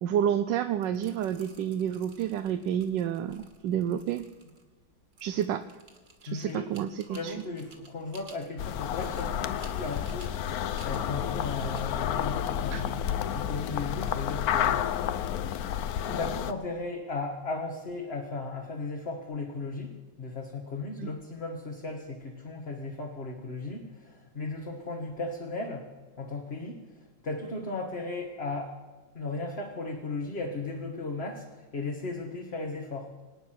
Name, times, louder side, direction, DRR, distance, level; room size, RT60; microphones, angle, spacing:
voice 1, 0.0-4.2 5.2-5.6 6.2-7.4 12.7-12.8 21.0-21.1, right 9 dB, 75° right, 9 dB, 1.3 m, -29 dB
sound 1, 0.7-13.4, right 3 dB, 40° right, 2.2 m, -56 dB
voice 2, 6.3-6.7 7.1-10.5 10.8-15.2 16.0-25.9 26.2-28.7 29.1-33.1, left 3 dB, 35° left, 1 dB, 1.6 m, -36 dB
sound 2, 8.6-16.5, left 10 dB, 65° left, 1.0 m, -30 dB
25.0 x 9.6 x 6.0 m, 1.2 s
omnidirectional pair, 2.0 m